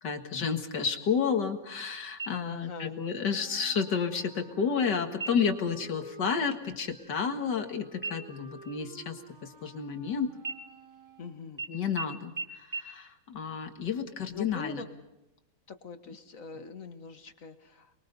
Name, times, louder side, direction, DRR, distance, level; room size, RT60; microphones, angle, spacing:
voice 1, 0.0-10.3 11.7-14.8, left 6 dB, 70° left, 5 dB, 2.4 m, -31 dB
sound 1, 2.2-2.9 3.3-3.4 3.9-4.4 5.1-5.7 6.0-6.3 6.6-7.7 8.0-10.0 10.4-11.2 11.6-11.7 12.0-12.1 12.4-12.5 12.7-12.8, right 4 dB, 10° right, 1.5 m, -40 dB
voice 2, 2.3-3.1 11.2-11.7 14.3-14.9 15.7-17.9, left 5 dB, 50° left, 8 dB, 1.8 m, -42 dB
Wind instrument woodwind instrument, 3.2-11.5, right 4 dB, 70° right, 3.0 m, -52 dB
29.0 x 22.0 x 5.4 m, 0.93 s
omnidirectional pair, 2.0 m